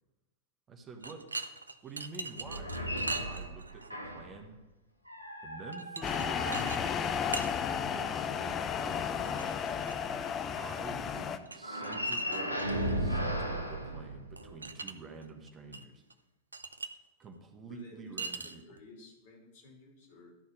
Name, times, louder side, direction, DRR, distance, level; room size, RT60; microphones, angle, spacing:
voice 1, 0.7-1.2 1.8-2.7 3.2-4.6 5.4-9.9 10.6-16.0 17.2-18.8, right 4 dB, 25° right, 4 dB, 1.2 m, -48 dB
sound 1, 1.0-3.9 5.7-6.3 6.5-6.8 7.1-7.5 9.3-10.0 11.5-12.9 14.4-14.9 15.2-15.8 16.1-16.2 16.5-17.0 18.2-18.8, right 3 dB, 80° right, 0.5 m, -41 dB
sound 2, 2.4-4.4 5.1-7.5 11.6-14.7, equal, 90° left, 1.0 m, -36 dB
sound 3, 6.0-11.4, left 7 dB, 25° left, 0.6 m, -33 dB
voice 2, 17.7-18.1 18.4-20.3, left 3 dB, 55° left, 0 dB, 3.0 m, -54 dB
12.0 x 4.2 x 6.5 m, 1.0 s
figure-of-eight pair, 90°, 0 cm